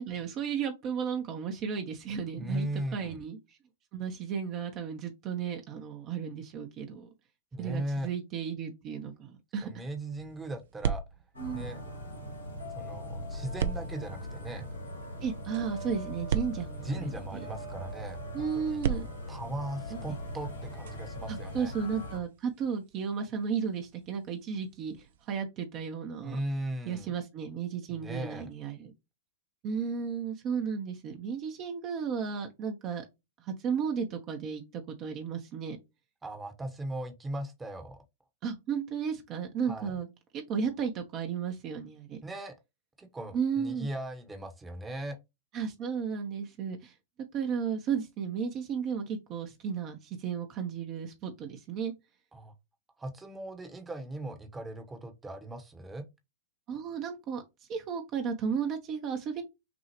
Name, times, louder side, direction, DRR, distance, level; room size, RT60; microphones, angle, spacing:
voice 1, 0.0-3.6 3.9-7.1 7.6-9.7 11.4-11.7 15.2-17.5 18.3-19.0 19.9-20.0 21.3-26.4 26.9-28.9 29.6-33.0 33.4-35.8 38.4-40.1 40.3-42.2 43.3-43.9 45.5-46.9 47.3-51.9 56.7-57.4 57.7-59.4, right 6 dB, 35° right, 0.8 m, -34 dB
voice 2, 2.4-3.2 7.5-8.1 9.6-11.0 11.5-11.8 12.7-14.7 16.8-18.8 19.3-21.7 26.2-27.1 27.9-28.5 36.2-38.0 39.7-40.0 42.2-42.5 43.0-45.2 52.3-52.5 53.0-56.0, right 1 dB, 15° right, 1.0 m, -38 dB
sound 1, 10.2-12.5 13.6-17.5 18.7-25.4, right 8 dB, 65° right, 0.5 m, -39 dB
sound 2, 11.3-22.2, equal, 85° left, 1.4 m, -40 dB
6.0 x 2.3 x 3.0 m
figure-of-eight pair, 105°, 0 cm